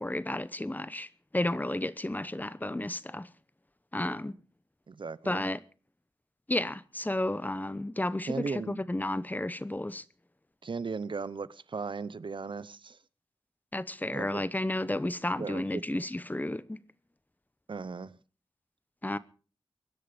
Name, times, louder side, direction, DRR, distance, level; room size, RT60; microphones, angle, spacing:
voice 1, 0.0-3.3 3.9-4.4 5.3-5.6 6.5-10.0 13.7-16.8 19.0-19.2, left 1 dB, 20° left, 0.9 m, -32 dB
voice 2, 4.9-5.4 8.3-8.8 10.6-13.0 14.1-14.4 15.4-16.0 17.7-18.2, right 4 dB, 60° right, 0.8 m, -37 dB
24.0 x 10.5 x 5.1 m
wide cardioid pair, 60°, 9 cm